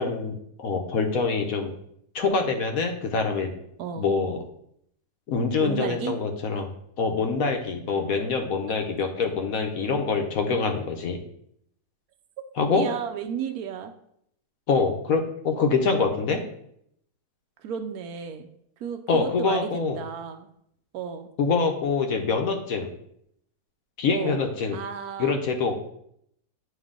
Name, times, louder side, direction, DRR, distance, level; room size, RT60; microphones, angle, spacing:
voice 1, 0.0-1.7 2.1-3.5 4.0-4.4 5.3-6.7 7.0-11.2 12.6-12.9 14.7-16.4 19.1-20.0 21.4-22.9 24.0-24.8 25.2-25.8, left 4 dB, 65° left, 4 dB, 1.1 m, -25 dB
voice 2, 5.6-6.2 12.7-13.9 17.6-18.5 18.8-20.5 20.9-21.3 24.1-24.4 24.7-25.4, right 7 dB, 75° right, 8 dB, 1.0 m, -33 dB
9.3 x 3.2 x 3.7 m, 0.71 s
omnidirectional pair, 1.7 m